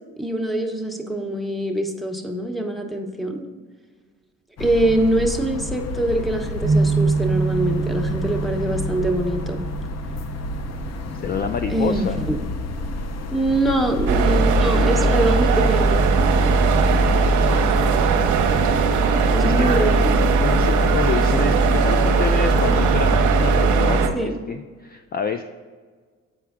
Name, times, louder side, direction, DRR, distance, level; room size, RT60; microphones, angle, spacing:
voice 1, 0.2-3.4 4.6-9.6 11.7-12.4 13.3-16.0 19.3-20.3 24.1-24.3, right 1 dB, ahead, 4 dB, 0.9 m, -23 dB
sound 1, 4.6-23.2, left 2 dB, 55° left, 0.7 m, -31 dB
sound 2, 6.6-10.9, right 4 dB, 35° right, 0.6 m, -25 dB
voice 2, 11.2-12.2 16.9-17.7 19.4-19.8 20.4-25.4, left 5 dB, 35° left, 7 dB, 0.4 m, -28 dB
sound 3, 14.1-24.1, right 4 dB, 75° right, 0.7 m, -18 dB
8.2 x 4.6 x 3.6 m, 1.5 s
cardioid pair, 90°, 30 cm